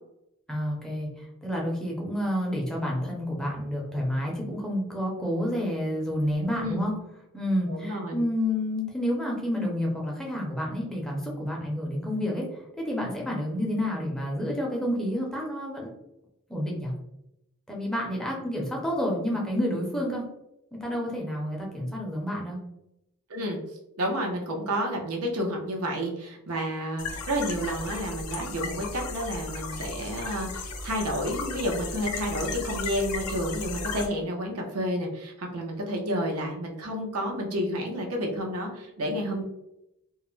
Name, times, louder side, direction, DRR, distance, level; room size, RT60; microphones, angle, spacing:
voice 1, 0.5-6.9 7.3-15.9 16.5-16.9 17.7-20.2 20.8-22.6, equal, 5° left, -3 dB, 0.5 m, -29 dB
voice 2, 6.5-6.8 7.7-8.2 23.3-23.6 24.0-39.4, equal, 80° right, 1 dB, 0.6 m, -30 dB
sound 1, 27.0-34.1, left 3 dB, 75° left, 0.4 m, -35 dB
2.3 x 2.0 x 3.0 m, 0.85 s
head